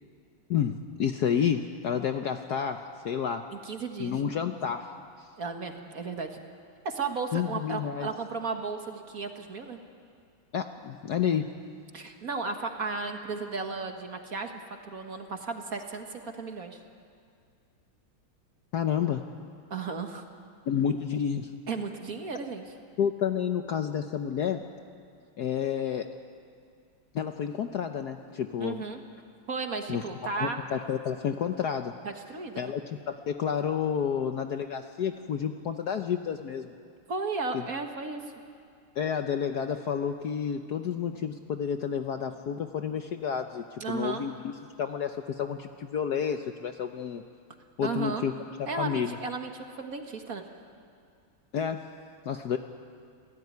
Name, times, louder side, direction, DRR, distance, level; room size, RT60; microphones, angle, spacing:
voice 1, 0.5-3.5 4.0-5.3 7.3-8.1 10.5-11.5 18.7-19.2 20.7-21.6 23.0-24.6 25.4-26.1 27.1-28.8 29.9-30.0 30.4-32.0 32.6-36.7 37.5-37.7 39.0-44.5 44.8-47.2 47.8-48.3 48.8-49.2 51.5-51.9 52.2-52.6, left 8 dB, 60° left, 7 dB, 1.1 m, -30 dB
voice 2, 3.5-4.2 5.4-6.4 6.8-9.8 11.9-16.8 19.7-20.2 21.7-22.6 28.6-29.0 29.5-30.6 32.0-32.7 37.1-38.3 43.8-44.2 47.8-48.2 48.7-50.4, right 4 dB, 45° right, 4 dB, 1.8 m, -34 dB
27.0 x 16.5 x 9.6 m, 2.3 s
omnidirectional pair, 2.3 m